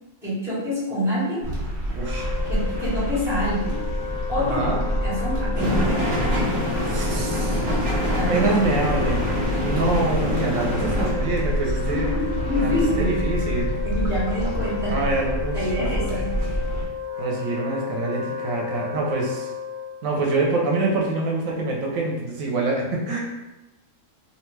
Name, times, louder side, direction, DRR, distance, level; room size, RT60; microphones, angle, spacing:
voice 1, 0.2-1.4 2.5-3.8 4.3-6.2 8.1-8.5 9.5-9.8 11.9-13.1 13.8-15.1 15.5-16.3, left 1 dB, ahead, -11 dB, 1.2 m, -27 dB
sound 1, 1.4-16.9, equal, 60° right, 0.9 m, -27 dB
Wind instrument woodwind instrument, 1.9-20.0, left 8 dB, 80° left, 1.1 m, -34 dB
voice 2, 2.0-2.3 4.3-4.8 6.8-7.6 8.1-12.1 12.6-12.7 13.0-13.7 14.9-16.4 17.2-19.5 20.0-23.2, right 3 dB, 80° right, -1 dB, 1.0 m, -26 dB
sound 2, 5.5-11.1, equal, 30° right, 0.7 m, -26 dB
2.6 x 2.3 x 3.1 m, 1.0 s
omnidirectional pair, 1.4 m